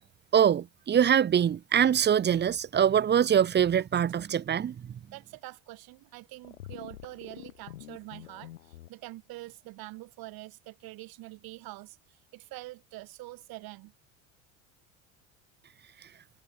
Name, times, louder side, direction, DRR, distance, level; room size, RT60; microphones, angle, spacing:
voice 1, 0.3-4.9, right 9 dB, 25° right, 0.8 m, -24 dB
voice 2, 5.1-12.0 12.3-13.9, right 20 dB, 60° right, 4.3 m, -45 dB
sound 1, 6.4-8.9, left 13 dB, 85° left, 1.8 m, -46 dB
hypercardioid pair, 75°, 41 cm